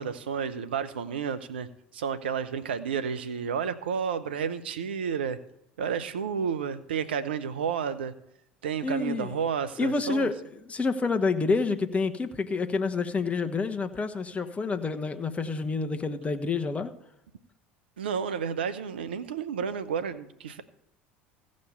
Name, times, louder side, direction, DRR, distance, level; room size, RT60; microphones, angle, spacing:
voice 1, 0.0-1.7 1.9-5.4 5.8-8.1 8.6-10.3 18.0-20.6, right 7 dB, 80° right, 12 dB, 0.8 m, -31 dB
voice 2, 8.8-9.3 9.8-16.9, left 4 dB, 25° left, 6 dB, 1.1 m, -28 dB
15.5 x 5.3 x 7.1 m, 0.83 s
hypercardioid pair, 70°, 6 cm